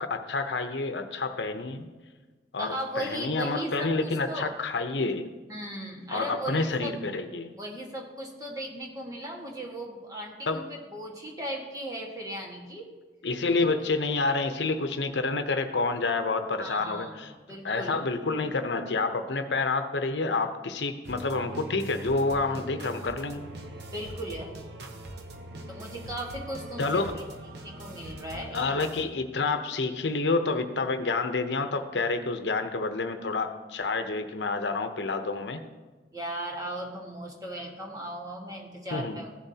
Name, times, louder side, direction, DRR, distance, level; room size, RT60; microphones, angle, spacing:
voice 1, 0.0-1.9 2.5-5.3 6.1-7.6 10.5-10.6 13.2-17.3 17.6-23.5 26.8-27.1 28.5-35.6 38.9-39.2, left 3 dB, 85° left, 8 dB, 0.7 m, -28 dB
voice 2, 2.6-4.5 5.5-6.9 7.6-10.6 10.9-12.9 16.6-17.2 17.5-18.2 23.9-24.5 25.7-27.2 27.6-28.8 36.1-39.3, right 1 dB, 20° right, -1 dB, 1.5 m, -37 dB
sound 1, 21.0-29.0, right 1 dB, 75° right, 0.9 m, -42 dB
15.5 x 7.1 x 2.8 m, 1.3 s
head